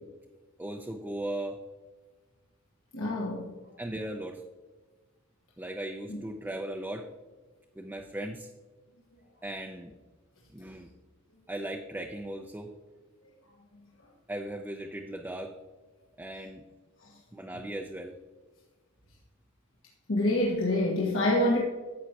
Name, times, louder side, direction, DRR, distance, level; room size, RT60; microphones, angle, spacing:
voice 1, 0.6-1.6 3.8-4.4 5.6-7.1 7.8-8.5 9.4-9.9 10.5-10.9 11.5-12.7 14.3-15.6 16.2-16.6 17.3-18.2, right 1 dB, 10° right, 3 dB, 0.5 m, -37 dB
voice 2, 2.9-3.5 6.1-6.2 13.7-13.8 17.0-17.1 20.1-21.6, left 1 dB, 70° left, -3 dB, 1.4 m, -26 dB
11.0 x 7.6 x 2.9 m, 1.3 s
head